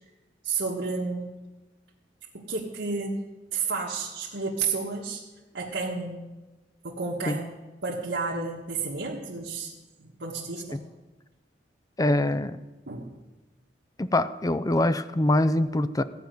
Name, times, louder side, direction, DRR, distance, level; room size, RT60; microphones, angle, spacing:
voice 1, 0.4-1.4 2.3-3.2 3.5-5.2 5.5-6.2 6.8-7.4 7.8-9.7 10.0-10.8 12.9-13.1, right 4 dB, 80° right, 1.4 m, -31 dB
voice 2, 12.0-12.6 14.0-16.0, left 1 dB, 20° left, 0.4 m, -24 dB
15.0 x 5.2 x 9.1 m
head